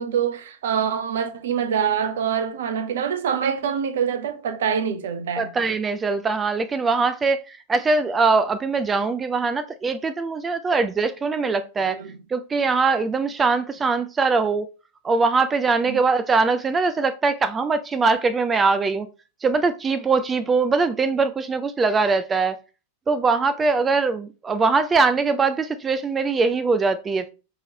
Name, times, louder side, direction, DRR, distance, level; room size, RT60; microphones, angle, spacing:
voice 1, 0.0-5.5 11.8-12.2 15.9-16.0, right 7 dB, 60° right, 0.6 m, -25 dB
voice 2, 5.4-12.0 12.3-14.7 15.0-19.1 19.4-22.6 23.1-27.3, right 4 dB, 20° right, 0.3 m, -22 dB
5.4 x 3.0 x 2.8 m
figure-of-eight pair, 90°, 0 cm